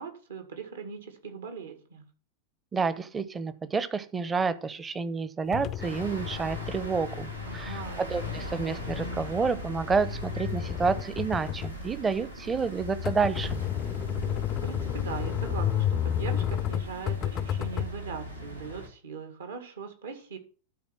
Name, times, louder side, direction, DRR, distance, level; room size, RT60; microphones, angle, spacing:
voice 1, 0.0-2.1 7.5-8.1 14.3-20.4, right 5 dB, 65° right, 7 dB, 1.9 m, -40 dB
voice 2, 2.7-13.6, right 5 dB, 15° right, 15 dB, 0.8 m, -29 dB
sound 1, 5.5-17.9, left 10 dB, 30° left, 0.4 m, -32 dB
sound 2, 5.8-18.9, equal, 85° right, 2.2 m, -40 dB
12.0 x 4.2 x 6.1 m, 0.39 s
figure-of-eight pair, 90°, 0 cm